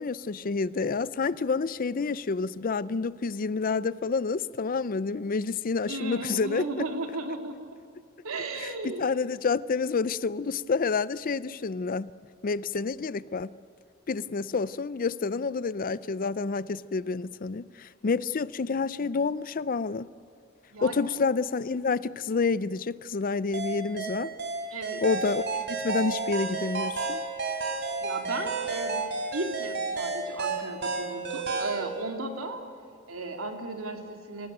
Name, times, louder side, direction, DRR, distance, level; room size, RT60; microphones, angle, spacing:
voice 1, 0.0-6.9 8.6-12.1 12.4-13.5 14.1-20.1 20.8-24.3 25.0-27.2, left 4 dB, 40° left, 0.5 m, -29 dB
voice 2, 5.9-7.7 8.2-9.0 20.7-21.0 24.7-25.0 28.0-29.0 29.3-32.6 33.1-34.5, right 2 dB, 85° right, 2.8 m, -35 dB
sound 1, 23.5-31.8, right 3 dB, 55° right, 3.6 m, -31 dB
26.0 x 17.0 x 9.1 m
head